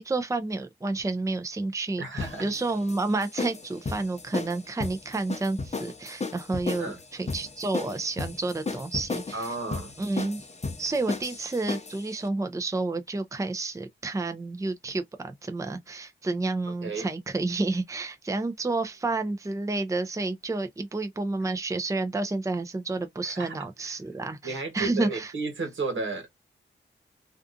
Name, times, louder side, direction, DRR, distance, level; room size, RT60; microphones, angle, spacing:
voice 1, 0.0-9.5 10.0-10.4 10.8-25.3, right 3 dB, 15° right, 0.5 m, -30 dB
voice 2, 2.0-2.5 6.8-7.0 9.3-9.9 16.8-17.1 23.2-24.0 24.4-26.3, right 3 dB, 75° right, 1.2 m, -33 dB
sound 1, 2.2-12.1, left 3 dB, 35° left, 0.7 m, -35 dB
2.5 x 2.4 x 2.4 m
cardioid pair, 50°, 20 cm